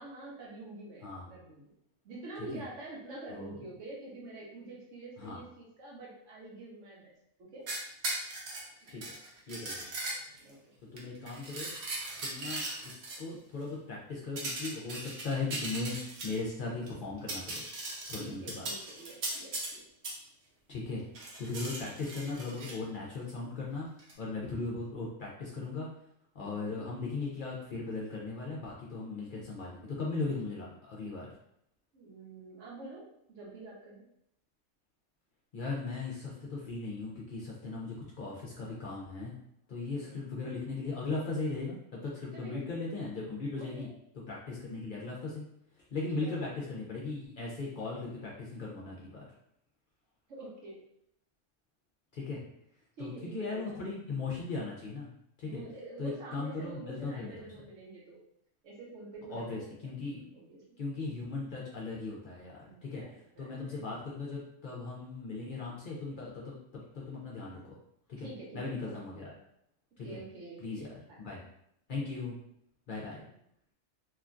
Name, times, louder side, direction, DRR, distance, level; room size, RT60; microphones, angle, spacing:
voice 1, 0.0-1.6 2.0-7.1 7.5-7.6 8.8-9.0 10.4-10.6 18.2-19.8 20.9-21.0 26.4-26.8 29.8-30.0 30.2-30.3 31.9-33.0 33.3-34.1 40.0-40.2 42.3-42.6 43.6-43.9 46.2-46.3 50.3-50.8 53.0-53.8 55.4-58.2 58.6-59.7 59.9-60.8 62.6-63.8 68.2-69.1 70.0-71.2 73.0-73.3, right 2 dB, 80° right, -4 dB, 1.2 m, -47 dB
sound 1, 7.7-10.5 11.0-13.2 14.4-16.5 16.9-17.0 17.2-19.7 20.0-20.2 21.2-22.8 24.0-24.1, right 2 dB, 65° right, 0.9 m, -38 dB
voice 2, 9.5-9.8 10.9-11.7 12.2-17.6 18.1-18.6 20.7-21.0 21.4-23.9 24.2-25.9 26.3-31.3 35.5-39.3 39.7-43.9 44.3-45.4 45.8-49.3 52.1-52.4 53.0-55.1 55.4-55.6 56.0-57.5 59.3-60.2 60.8-63.0 63.4-67.8 68.1-68.3 68.5-69.4 70.0-70.2 70.6-70.9 71.2-71.4 71.9-72.4 72.9-73.2, left 3 dB, 55° left, -4 dB, 0.6 m, -38 dB
3.0 x 2.2 x 2.5 m, 0.73 s
omnidirectional pair, 1.3 m